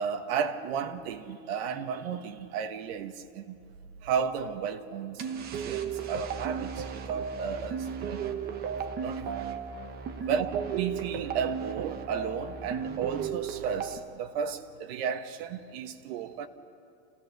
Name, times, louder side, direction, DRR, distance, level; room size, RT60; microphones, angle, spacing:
voice 1, 0.0-3.6 4.0-8.5 8.9-9.6 10.3-16.5, right 7 dB, 60° right, 1.4 m, -34 dB
sound 1, 5.2-14.0, right 7 dB, 25° right, 1.0 m, -35 dB
29.0 x 16.0 x 6.6 m
supercardioid pair, 165°, 35 cm